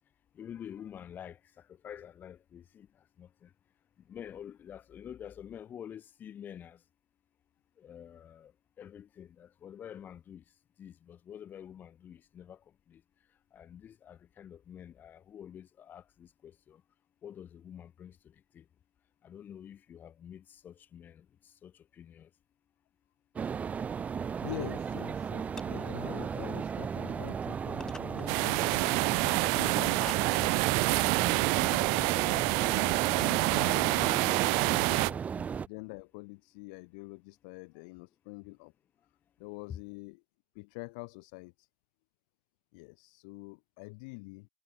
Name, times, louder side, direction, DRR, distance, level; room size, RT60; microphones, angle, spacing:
voice 1, 0.4-1.4 1.8-2.9 3.2-3.5 4.1-6.8 7.8-8.5 8.8-10.4 10.8-12.6 12.9-13.0 13.5-16.8 17.2-18.1 18.5-18.6 19.2-21.2 21.6-21.7 22.0-22.3 33.6-33.8, left 9 dB, 40° left, 5.8 m, -47 dB
sound 1, 23.4-35.7, right 6 dB, 30° right, 1.5 m, -36 dB
voice 2, 24.4-28.9 29.5-30.3 31.6-38.7 39.4-40.2 40.6-41.7 42.7-44.5, left 30 dB, 75° left, 1.8 m, -45 dB
sound 2, 24.9-25.1 25.4-26.0 26.5-26.6 27.3-27.4 27.8-28.3 28.6-28.7 29.1-29.4 29.9-30.5 30.8-33.0, left 3 dB, 15° left, 2.2 m, -48 dB
sound 3, 28.3-35.1, right 40 dB or more, 70° right, 0.5 m, -27 dB
hypercardioid pair, 85°, 5 cm